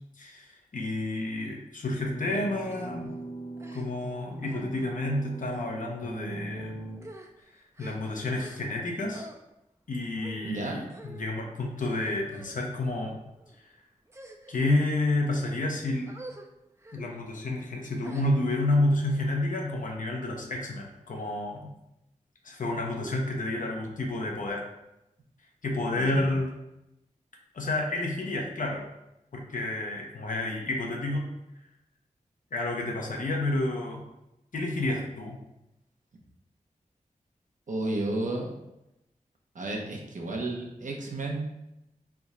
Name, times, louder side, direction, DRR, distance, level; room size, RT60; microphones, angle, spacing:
voice 1, 0.2-3.1 3.7-6.8 7.8-9.3 9.9-13.2 13.6-13.7 14.5-16.1 16.9-21.7 22.4-24.6 25.6-26.5 27.5-28.8 29.3-31.3 32.5-34.0 34.5-35.4, left 2 dB, 70° left, 0 dB, 0.8 m, -30 dB
sound 1, 1.9-7.0, right 1 dB, 20° left, 0.9 m, -40 dB
sound 2, 2.7-2.9 3.6-4.1 4.4-4.7 5.4-5.7 6.4-6.5 6.9-8.8 9.1-9.4 10.2-10.5 10.9-11.3 11.8-12.6 13.3-13.6 14.1-14.8 15.3-15.6 16.1-16.5 16.8-17.0 18.0-18.7, right 1 dB, 20° right, 0.5 m, -48 dB
voice 2, 10.4-10.8 25.9-26.3 37.7-38.6 39.5-41.5, right 2 dB, 65° right, 0 dB, 0.8 m, -32 dB
3.5 x 2.4 x 4.2 m, 0.88 s
cardioid pair, 50°, 14 cm